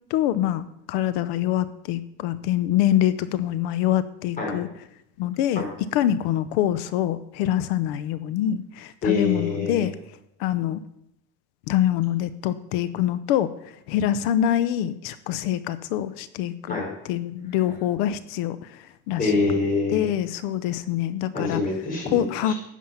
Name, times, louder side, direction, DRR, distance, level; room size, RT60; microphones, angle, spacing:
voice 1, 0.1-4.7 5.2-5.6 5.9-9.9 10.4-10.8 11.7-19.3 19.9-21.6 22.1-22.5, left 11 dB, 60° left, 14 dB, 0.8 m, -25 dB
voice 2, 9.0-9.9 16.7-16.9 19.2-20.1 21.3-22.5, left 3 dB, 25° left, 1 dB, 4.5 m, -25 dB
13.5 x 9.3 x 5.7 m, 0.80 s
cardioid pair, 160°, 34 cm